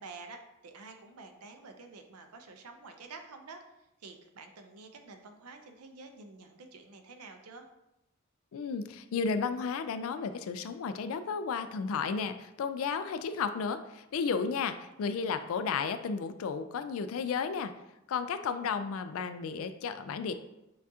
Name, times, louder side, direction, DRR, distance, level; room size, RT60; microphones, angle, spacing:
voice 1, 0.0-3.6 4.0-7.7, right 3 dB, 90° right, 5 dB, 0.6 m, -49 dB
voice 2, 8.5-17.7 18.1-20.3, left 5 dB, 70° left, 11 dB, 0.3 m, -33 dB
6.5 x 2.4 x 2.7 m, 0.90 s
head